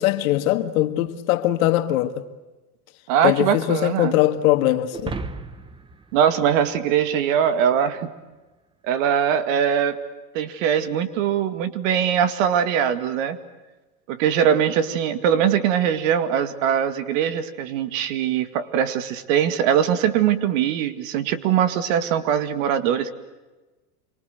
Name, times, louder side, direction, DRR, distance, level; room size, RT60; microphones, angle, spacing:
voice 1, 0.0-2.2 3.2-5.1, left 14 dB, 65° left, 2.0 m, -21 dB
voice 2, 3.1-4.2 6.1-8.1 8.8-10.0 10.3-13.4 14.1-23.1, right 9 dB, 60° right, 2.3 m, -21 dB
sound 1, 4.9-7.4, right 3 dB, 10° right, 0.9 m, -35 dB
27.0 x 24.5 x 8.0 m
supercardioid pair, 150°, 45 cm